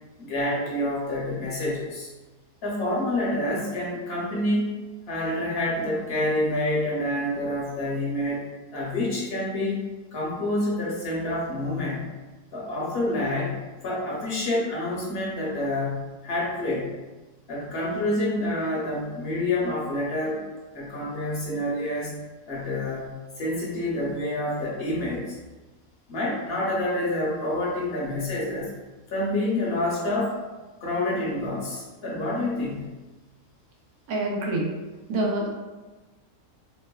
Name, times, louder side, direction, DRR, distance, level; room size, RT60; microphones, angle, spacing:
voice 1, 0.2-2.1 2.6-4.7 5.1-8.4 8.7-9.8 10.1-12.1 12.5-16.9 17.5-20.4 20.7-22.2 22.5-25.4 26.1-28.7 29.1-30.4 30.8-32.9, left 1 dB, 55° left, -5 dB, 0.8 m, -28 dB
voice 2, 34.1-34.7 35.1-35.5, right 1 dB, 85° right, -2 dB, 1.1 m, -26 dB
2.9 x 2.1 x 2.2 m, 1.2 s
omnidirectional pair, 1.5 m